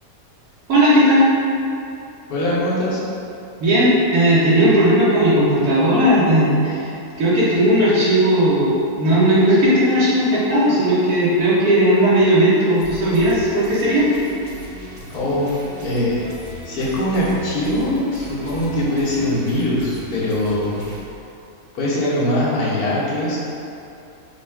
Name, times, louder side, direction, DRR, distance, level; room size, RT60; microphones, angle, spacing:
voice 1, 0.7-1.3 3.6-6.9 7.2-14.1, right 1 dB, 80° right, -9 dB, 1.3 m, -16 dB
voice 2, 2.3-3.0 15.1-15.5 15.8-16.2 16.6-20.8 21.7-23.4, left 1 dB, 80° left, -7 dB, 1.3 m, -21 dB
sound 1, 12.7-21.0, left 1 dB, 55° right, 1.0 m, -38 dB
3.1 x 2.3 x 4.3 m, 2.7 s
omnidirectional pair, 1.6 m